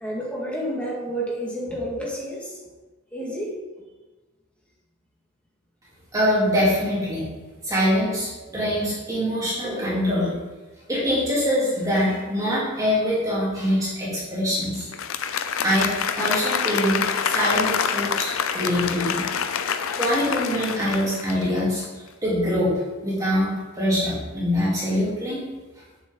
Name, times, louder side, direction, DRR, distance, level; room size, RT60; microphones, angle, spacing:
voice 1, 0.0-2.6 3.1-3.5, equal, 5° left, -4 dB, 1.9 m, -30 dB
voice 2, 6.1-7.2 7.6-10.3 10.9-14.9 15.6-19.2 19.9-21.8 22.2-22.7 23.0-25.4, equal, 15° right, -8 dB, 2.7 m, -24 dB
Applause, 14.8-21.8, left 7 dB, 75° left, 0.5 m, -26 dB
8.7 x 6.7 x 3.9 m, 1.2 s
head